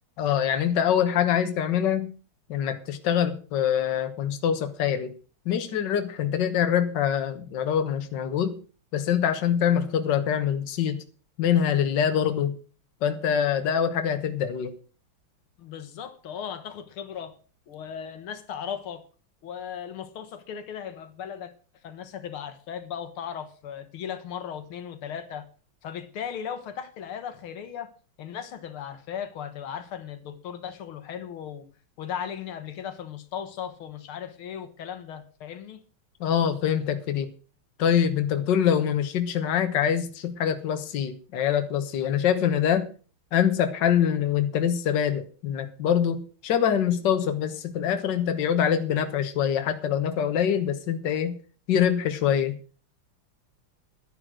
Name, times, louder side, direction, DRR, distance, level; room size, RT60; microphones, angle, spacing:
voice 1, 0.2-2.1 2.5-5.1 5.5-8.6 8.9-11.0 11.4-12.6 13.0-14.8 36.2-37.3 37.8-42.9 43.3-51.4 51.7-52.6, left 9 dB, 60° left, 8 dB, 1.8 m, -24 dB
voice 2, 15.6-17.4 17.7-19.0 19.4-21.5 21.8-25.5 25.8-27.9 28.2-31.7 32.0-35.8, left 8 dB, 85° left, 11 dB, 2.2 m, -37 dB
11.0 x 10.5 x 6.2 m, 0.38 s
omnidirectional pair, 2.3 m